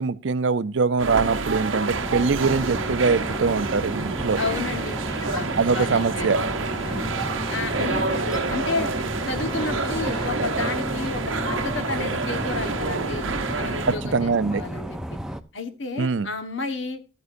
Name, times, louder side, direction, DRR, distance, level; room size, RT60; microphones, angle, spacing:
voice 1, 0.0-4.4 5.6-6.4 14.1-14.6 16.0-16.3, right 4 dB, 70° right, 0.5 m, -23 dB
sound 1, 1.0-14.0, right 3 dB, 90° right, 1.0 m, -28 dB
sound 2, 1.9-15.4, equal, 5° right, 0.5 m, -33 dB
voice 2, 4.4-5.5 5.7-6.4 6.8-7.1 7.5-8.9 9.2-13.3 13.5-15.2 15.5-17.0, left 3 dB, 75° left, 1.4 m, -31 dB
Human group actions, 4.5-10.3, left 2 dB, 20° left, 1.2 m, -42 dB
13.0 x 9.6 x 2.6 m
head